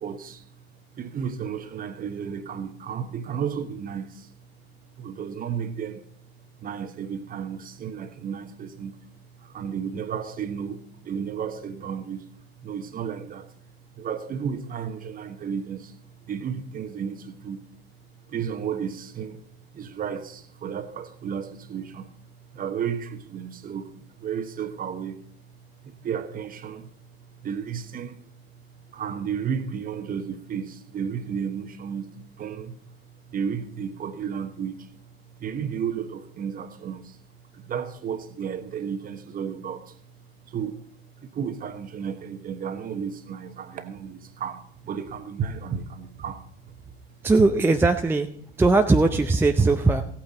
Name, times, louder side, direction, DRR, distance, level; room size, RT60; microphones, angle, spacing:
voice 1, 0.0-0.4 1.0-4.3 5.0-6.0 6.6-9.0 9.4-12.2 12.6-13.5 14.0-16.0 16.3-17.6 18.3-19.4 19.7-22.1 22.5-25.2 25.8-26.9 27.4-28.2 28.9-32.8 33.3-34.9 35.4-37.2 37.5-40.0 40.5-40.8 41.2-46.9, right 7 dB, 25° right, 1.2 m, -33 dB
voice 2, 47.2-48.3 48.6-50.0, right 3 dB, 5° right, 0.6 m, -19 dB
16.5 x 8.8 x 3.9 m
figure-of-eight pair, 80°, 32 cm